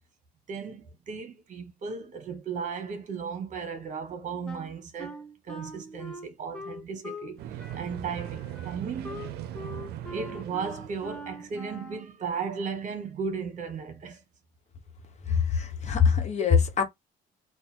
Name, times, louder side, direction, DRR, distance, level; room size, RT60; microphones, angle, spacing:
voice 1, 0.5-7.4 7.7-9.2 10.1-14.2, right 5 dB, 45° right, 1.3 m, -35 dB
Wind instrument woodwind instrument, 4.5-7.3 7.6-12.1, left 1 dB, 5° left, 0.9 m, -42 dB
sound 1, 7.4-11.6, right 12 dB, 75° right, 0.6 m, -39 dB
voice 2, 15.3-16.8, left 6 dB, 40° left, 1.2 m, -23 dB
3.5 x 2.4 x 4.4 m
cardioid pair, 110°, 17 cm